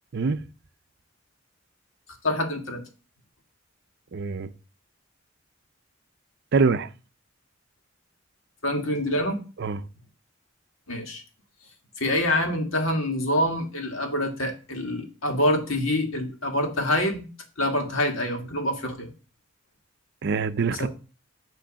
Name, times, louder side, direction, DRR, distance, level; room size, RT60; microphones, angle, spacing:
voice 1, 2.2-2.8 8.6-9.4 10.9-11.2 12.0-17.2 17.6-19.1 20.8-20.9, left 1 dB, 85° left, 1.7 m, -26 dB
voice 2, 4.1-4.5 6.5-6.9 9.6-9.8 20.2-20.9, right 4 dB, 60° right, 0.5 m, -24 dB
8.6 x 3.2 x 6.3 m
head